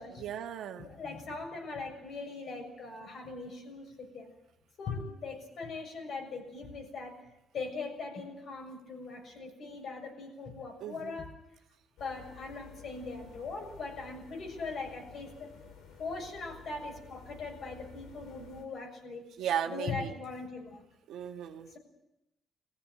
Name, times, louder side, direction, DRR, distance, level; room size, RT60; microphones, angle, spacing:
voice 1, 0.2-0.9 10.8-11.2 19.4-20.2 21.1-21.7, right 9 dB, 80° right, 4 dB, 1.4 m, -36 dB
voice 2, 0.8-4.3 4.8-7.3 7.5-11.4 12.0-15.5 16.0-19.2 19.6-20.8, left 4 dB, 65° left, 3 dB, 6.8 m, -40 dB
sound 1, 12.0-18.6, left 6 dB, 85° left, 3.5 m, -53 dB
22.0 x 15.5 x 9.4 m, 0.89 s
cardioid pair, 90°, 0 cm